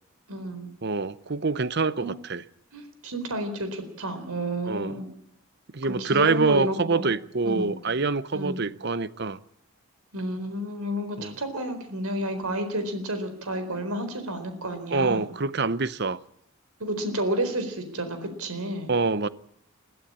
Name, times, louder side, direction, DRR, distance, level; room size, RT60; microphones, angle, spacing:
voice 1, 0.3-0.7 2.0-2.2 2.7-5.1 5.8-7.1 7.4-7.8 8.3-8.6 10.1-15.3 16.8-18.9, right 1 dB, 85° right, 4.2 m, -31 dB
voice 2, 0.8-2.4 4.6-4.9 5.7-9.4 11.2-11.3 14.7-16.2 18.9-19.3, right 4 dB, 50° right, 0.7 m, -26 dB
22.0 x 14.5 x 8.8 m
head